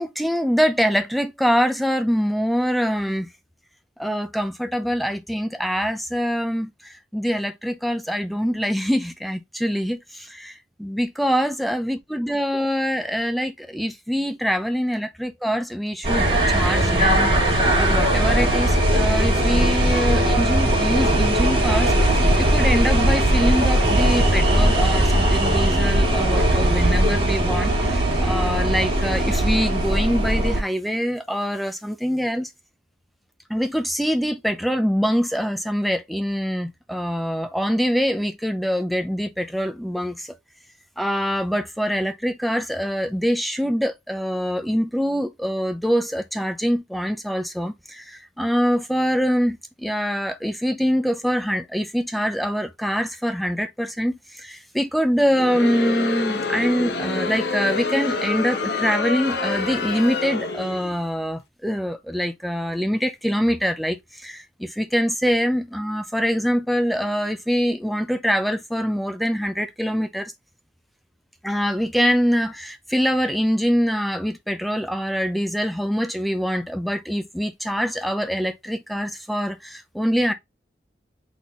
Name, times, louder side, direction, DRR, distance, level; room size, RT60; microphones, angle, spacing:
voice 1, 0.0-3.3 4.0-17.3 17.7-21.9 22.4-32.5 33.5-40.3 41.0-70.3 71.4-80.3, equal, ahead, 0.6 m, -24 dB
sound 1, 16.0-30.6, right 1 dB, 30° right, 1.9 m, -19 dB
Crowd, 55.3-61.0, left 3 dB, 70° left, 0.9 m, -27 dB
4.1 x 3.8 x 3.0 m
head